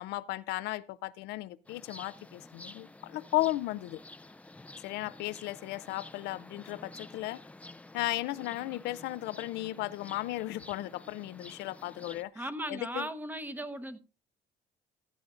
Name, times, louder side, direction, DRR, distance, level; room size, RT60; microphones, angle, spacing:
voice 1, 0.0-4.0 4.8-7.4 7.9-12.4 12.7-13.1, left 17 dB, 85° left, 0.5 m, -35 dB
sound 1, 1.6-12.2, left 2 dB, 10° left, 0.4 m, -50 dB
voice 2, 12.3-14.0, right 1 dB, 10° right, 0.9 m, -37 dB
15.5 x 11.0 x 2.5 m
cardioid pair, 110°, 17 cm